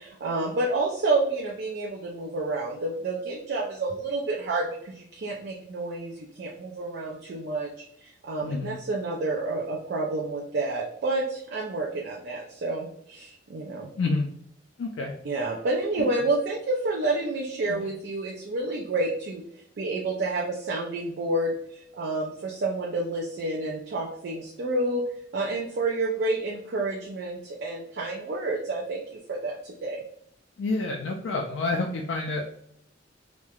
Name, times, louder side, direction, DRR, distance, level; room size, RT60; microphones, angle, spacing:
voice 1, 0.0-7.7 8.0-13.9 15.2-19.4 19.8-25.0 25.3-30.0, right 2 dB, 55° right, -1 dB, 0.3 m, -29 dB
voice 2, 8.4-8.8 14.0-14.3 14.8-15.1 17.7-17.9 30.6-32.4, left 3 dB, 70° left, 1 dB, 0.3 m, -28 dB
3.0 x 2.1 x 2.3 m, 0.70 s
head